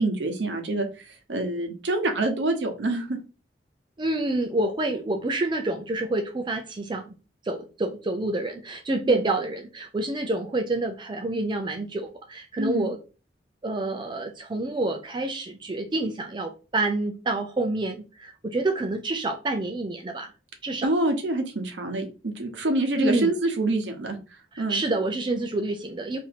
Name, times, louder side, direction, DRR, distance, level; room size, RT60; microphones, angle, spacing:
voice 1, 0.0-3.2 9.1-9.2 12.6-12.9 20.8-24.2 24.6-24.8, right 2 dB, 90° right, 5 dB, 0.8 m, -26 dB
voice 2, 4.0-7.1 7.5-13.0 13.6-20.3 20.6-20.9 23.0-23.3 24.5-26.2, right 2 dB, 25° right, 4 dB, 0.4 m, -28 dB
2.9 x 2.6 x 4.1 m, 0.33 s
head